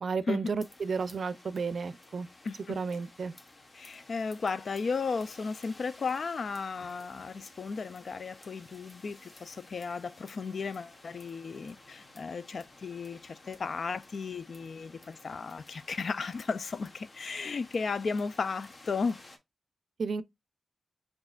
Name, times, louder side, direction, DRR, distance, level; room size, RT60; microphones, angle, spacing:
voice 1, 0.0-2.3 2.7-3.3 20.0-20.2, right 5 dB, 70° right, 0.4 m, -32 dB
sound 1, 0.6-19.4, left 2 dB, 45° left, 1.1 m, -54 dB
voice 2, 2.5-2.8 3.8-19.2, left 4 dB, 65° left, 0.3 m, -35 dB
4.8 x 3.6 x 2.4 m
cardioid pair, 55°, 0 cm